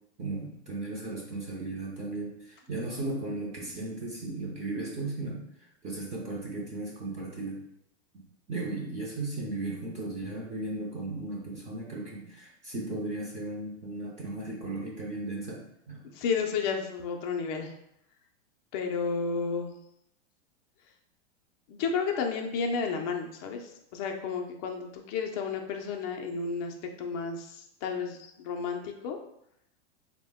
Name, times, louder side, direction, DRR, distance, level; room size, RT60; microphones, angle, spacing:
voice 1, 0.2-5.4 5.8-7.6 8.1-15.6 15.9-16.0, right 2 dB, 20° right, -4 dB, 0.6 m, -36 dB
voice 2, 16.1-17.7 18.7-19.7 21.7-29.2, left 5 dB, 35° left, 3 dB, 0.4 m, -32 dB
3.5 x 2.1 x 3.5 m, 0.77 s
hypercardioid pair, 140°, 35 cm